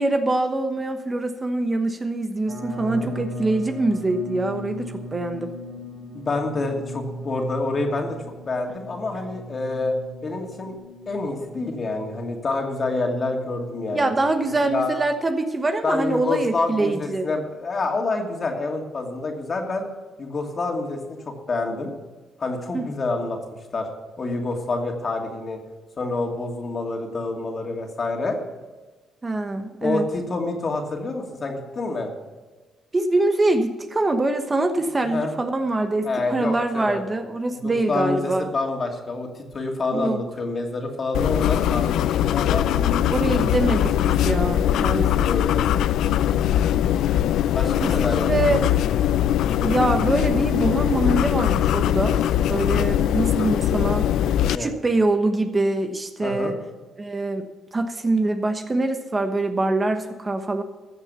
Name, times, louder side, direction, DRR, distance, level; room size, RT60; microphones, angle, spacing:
voice 1, 0.0-5.5 13.9-17.3 22.7-22.8 29.2-30.1 32.9-38.5 39.9-40.2 43.1-45.3 47.8-48.0 48.3-48.6 49.6-52.2 52.5-54.1 54.5-56.6 57.0-57.4 57.7-60.6, right 2 dB, 25° right, 6 dB, 1.1 m, -24 dB
sound 1, 2.5-13.4, equal, 55° right, 4.2 m, -38 dB
voice 2, 2.8-3.2 6.1-8.2 8.5-9.9 10.2-10.8 11.1-14.1 14.6-14.9 15.8-19.8 20.2-21.9 22.4-23.4 23.7-23.9 24.2-25.6 26.0-28.4 29.8-32.1 35.0-35.3 36.0-37.0 37.5-43.1 45.2-45.9 47.5-48.7 54.5-54.7 56.2-56.5, left 3 dB, 40° left, 2 dB, 2.6 m, -27 dB
sound 2, 41.1-54.6, left 11 dB, 80° left, 0.4 m, -21 dB
14.0 x 7.2 x 7.0 m, 1.3 s
cardioid pair, 90°, 0 cm